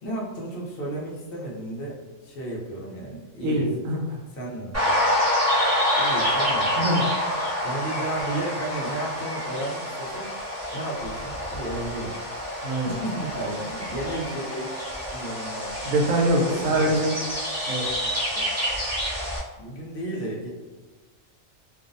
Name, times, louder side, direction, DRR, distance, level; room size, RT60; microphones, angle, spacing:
voice 1, 0.0-3.7 4.3-5.1 6.0-7.1 7.6-10.3 10.7-12.2 12.8-14.7 15.1-15.8 16.5-17.1 18.3-18.5 19.6-20.5, right 2 dB, 60° left, -4 dB, 0.7 m, -33 dB
voice 2, 3.4-4.2 6.8-7.0 12.6-12.9 15.8-17.1 17.7-17.8, right 1 dB, 85° right, 0 dB, 1.0 m, -23 dB
sound 1, 4.7-19.4, equal, 15° right, 0.5 m, -27 dB
2.6 x 2.0 x 2.5 m, 1.2 s
omnidirectional pair, 1.4 m